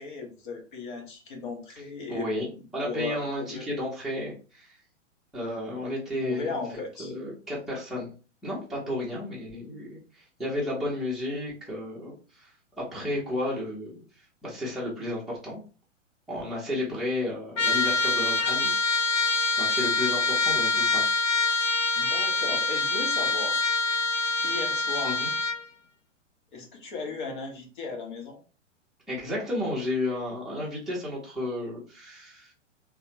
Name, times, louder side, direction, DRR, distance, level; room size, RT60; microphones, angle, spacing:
voice 1, 0.0-2.3 2.8-3.7 6.2-7.1 21.9-23.7 24.4-25.3 26.5-28.4, left 4 dB, 40° left, 2 dB, 0.9 m, -36 dB
voice 2, 2.1-4.7 5.3-6.6 7.0-8.1 8.4-10.0 10.4-12.5 12.8-14.0 14.4-15.6 16.3-18.7 19.6-21.0 25.0-25.3 29.1-32.5, left 1 dB, ahead, -6 dB, 0.8 m, -32 dB
Trumpet, 17.6-25.6, left 3 dB, 75° left, 0.6 m, -25 dB
3.3 x 2.2 x 2.8 m, 0.35 s
figure-of-eight pair, 115°, 37 cm